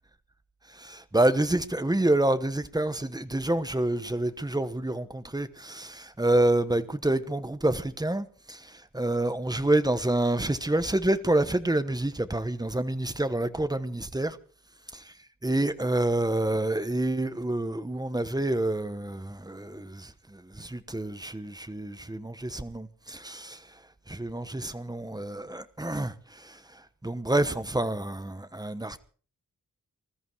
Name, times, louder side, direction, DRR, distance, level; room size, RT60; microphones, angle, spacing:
voice 1, 0.7-14.4 15.4-29.0, right 1 dB, 10° right, 1.1 m, -28 dB
20.5 x 14.0 x 4.7 m
wide cardioid pair, 110°, 33 cm